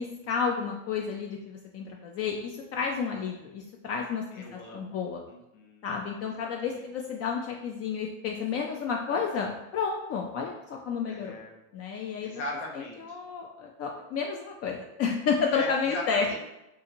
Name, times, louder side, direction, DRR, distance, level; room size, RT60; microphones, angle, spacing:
voice 1, 0.0-5.2 5.8-11.4 11.7-12.4 12.7-16.4, left 5 dB, 45° left, 1 dB, 0.4 m, -31 dB
voice 2, 4.3-5.0 5.3-5.9 6.2-6.9 11.1-11.6 12.2-13.0 15.5-16.4, left 2 dB, 75° left, 0 dB, 1.0 m, -39 dB
3.7 x 2.5 x 2.9 m, 0.92 s
supercardioid pair, 115°, 33 cm